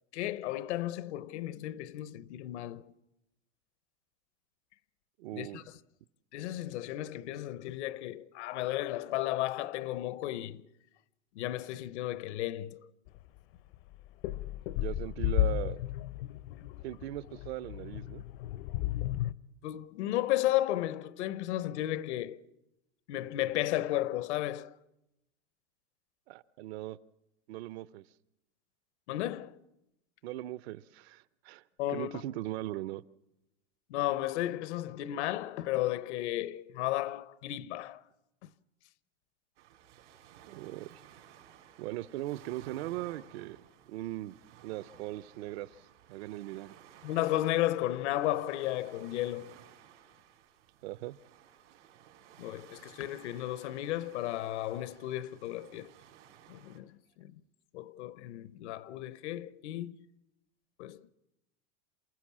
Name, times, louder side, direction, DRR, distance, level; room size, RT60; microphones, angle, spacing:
voice 1, 0.1-2.9 5.3-5.6 6.3-10.6 11.3-12.9 19.6-22.4 23.1-24.7 29.1-29.6 31.8-32.1 33.9-38.0 47.0-49.6 52.4-55.9 56.5-57.4 57.7-60.0 60.8-61.1, left 14 dB, 75° left, 1.0 m, -34 dB
voice 2, 5.2-5.7 14.8-15.8 16.8-18.2 26.3-27.0 27.5-28.0 30.2-31.6 31.9-33.0 40.5-41.0 41.8-44.4 44.6-46.8 50.8-51.2, right 16 dB, 65° right, 0.7 m, -39 dB
sound 1, 13.1-13.2 13.7-19.3, left 14 dB, 55° left, 0.7 m, -33 dB
sound 2, 39.6-56.8, right 10 dB, 85° right, 4.1 m, -57 dB
28.0 x 15.5 x 7.3 m
supercardioid pair, 165°, 34 cm